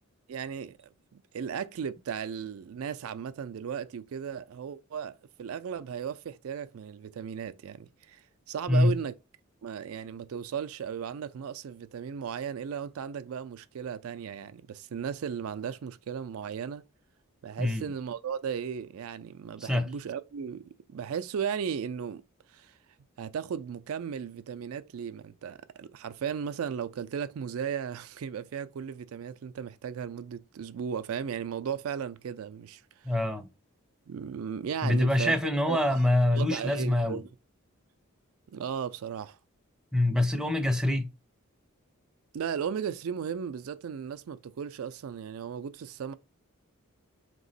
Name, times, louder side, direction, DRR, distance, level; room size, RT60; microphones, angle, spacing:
voice 1, 0.3-9.1 9.6-16.8 17.4-22.2 22.5-22.7 23.2-33.1 34.1-35.3 35.7-35.8 36.3-37.3 38.5-39.4 42.3-46.1, right 7 dB, 75° right, 0.4 m, -36 dB
voice 2, 17.6-17.9 19.6-19.9 33.0-33.5 34.8-37.2 39.9-41.1, left 1 dB, 5° right, 0.5 m, -25 dB
3.6 x 3.0 x 4.0 m
head